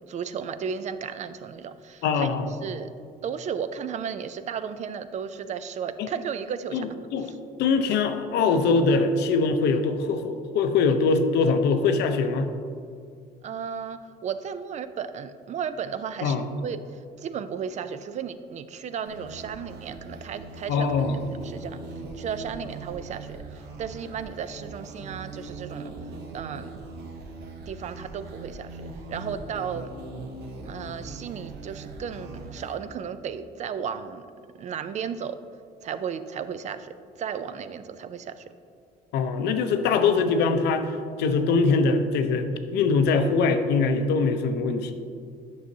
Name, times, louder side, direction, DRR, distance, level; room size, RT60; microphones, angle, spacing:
voice 1, 0.1-2.3 2.6-2.9 3.2-6.9 7.2-7.3 13.4-20.9 21.4-21.8 22.1-23.4 23.8-25.9 26.3-26.8 27.7-29.9 30.6-34.3 34.5-35.4 35.8-38.4, right 7 dB, 45° right, 12 dB, 0.4 m, -34 dB
voice 2, 2.0-2.5 6.0-6.1 6.7-7.3 7.6-12.5 16.2-16.5 20.7-21.2 39.1-44.9, left 4 dB, 80° left, 8 dB, 0.6 m, -23 dB
sound 1, 19.0-32.8, right 3 dB, 80° right, 1.0 m, -40 dB
9.2 x 6.3 x 2.7 m, 2.3 s
cardioid pair, 110°, 17 cm